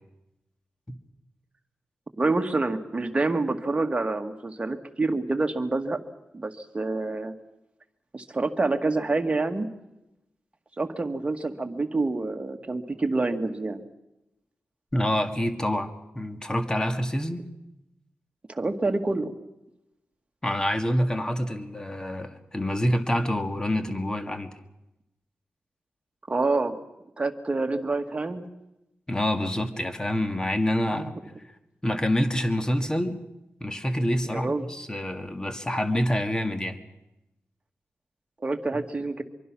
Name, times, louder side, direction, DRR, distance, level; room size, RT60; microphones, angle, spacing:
voice 1, 2.2-6.0 6.3-7.3 8.1-9.7 10.8-13.8 18.5-19.3 26.3-26.8 27.2-28.4 31.0-31.1 34.3-34.6 38.4-39.2, right 3 dB, 25° right, 5 dB, 1.9 m, -27 dB
voice 2, 14.9-17.4 20.4-24.5 29.1-31.1 31.4-31.5 31.8-33.2 33.6-36.8 38.7-38.8, equal, 15° left, 7 dB, 2.0 m, -27 dB
25.0 x 23.5 x 6.2 m, 0.92 s
wide cardioid pair, 120°, 4 cm